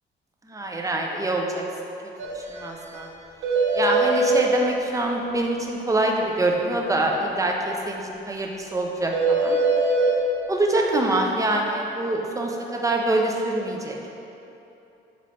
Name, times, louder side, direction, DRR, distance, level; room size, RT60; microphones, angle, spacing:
voice 1, 0.5-1.6 2.3-3.1 3.7-9.6 10.5-14.1, right 2 dB, 15° right, 1 dB, 0.5 m, -25 dB
sound 1, 2.2-2.3 2.6-2.7 2.9-3.0 3.4-4.4 9.1-10.1, right 3 dB, 75° right, 0.8 m, -21 dB
4.1 x 4.1 x 3.1 m, 2.9 s
cardioid pair, 90°, 20 cm